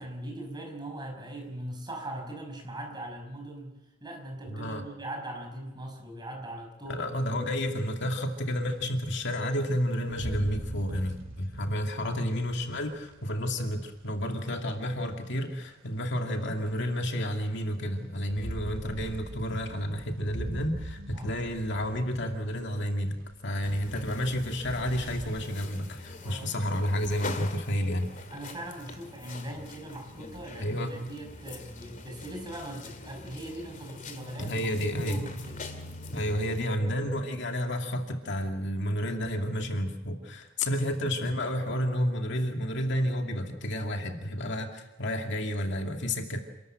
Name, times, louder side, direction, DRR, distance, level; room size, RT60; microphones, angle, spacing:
voice 1, 0.0-3.7 4.0-7.0 12.0-12.2 21.1-21.4 26.2-26.5 28.3-35.6 36.7-36.8 40.7-40.8, right 1 dB, 20° right, 2 dB, 5.5 m, -40 dB
voice 2, 4.5-4.8 6.9-23.2 23.4-28.3 30.5-31.0 34.4-35.2 36.1-46.4, equal, 65° left, 3 dB, 2.4 m, -31 dB
sound 1, 7.8-7.9 8.6-8.7 9.3-9.4 10.1-15.3 16.2-16.3 18.0-25.4, right 1 dB, 75° right, 3.6 m, -42 dB
sound 2, 23.6-36.7, left 2 dB, 40° left, 2.4 m, -43 dB
28.0 x 13.0 x 9.0 m, 0.97 s
head